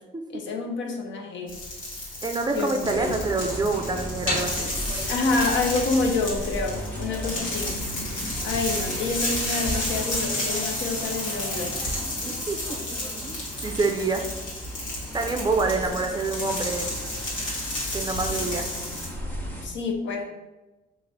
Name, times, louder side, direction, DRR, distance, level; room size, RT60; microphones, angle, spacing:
voice 1, 0.3-1.6 2.5-3.2 5.1-7.8 8.4-11.8 15.7-16.0 18.3-18.4 19.6-20.4, left 3 dB, 70° left, 3 dB, 0.6 m, -28 dB
sound 1, 1.5-19.1, left 1 dB, 85° left, 1.2 m, -31 dB
voice 2, 2.2-4.7 12.3-12.8 13.1-14.2 15.1-16.9 17.9-18.7, right 3 dB, 20° right, 4 dB, 0.4 m, -27 dB
sound 2, 2.8-19.7, equal, 10° left, 0.8 m, -37 dB
3.0 x 2.5 x 3.9 m, 1.1 s
cardioid pair, 90°, 20 cm